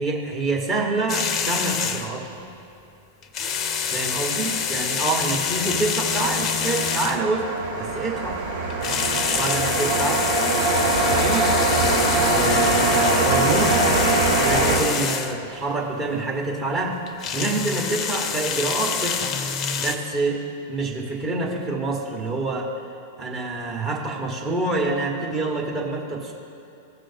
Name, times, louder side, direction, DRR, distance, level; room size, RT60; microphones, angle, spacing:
voice 1, 0.0-2.4 3.9-8.4 9.3-10.3 10.8-11.6 12.2-13.9 14.4-19.4 19.8-22.7 23.2-26.3, right 2 dB, 30° right, -2 dB, 1.7 m, -27 dB
sound 1, 1.1-2.2 3.2-7.4 8.7-15.4 17.1-20.0, left 7 dB, 35° left, 0.6 m, -26 dB
sound 2, 4.6-14.8, right 2 dB, 75° right, 2.0 m, -23 dB
15.5 x 6.2 x 2.9 m, 2.8 s
figure-of-eight pair, 95°, 0 cm